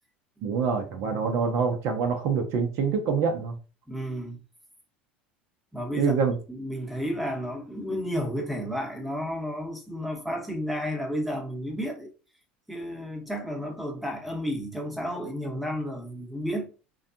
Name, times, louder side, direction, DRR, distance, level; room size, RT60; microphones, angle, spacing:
voice 1, 0.4-3.5 6.0-6.4, right 5 dB, 55° right, 0.7 m, -25 dB
voice 2, 3.9-4.4 5.7-6.1 6.5-12.1 12.7-16.7, equal, ahead, 1.0 m, -32 dB
3.3 x 2.3 x 2.6 m
hypercardioid pair, 75°, 6 cm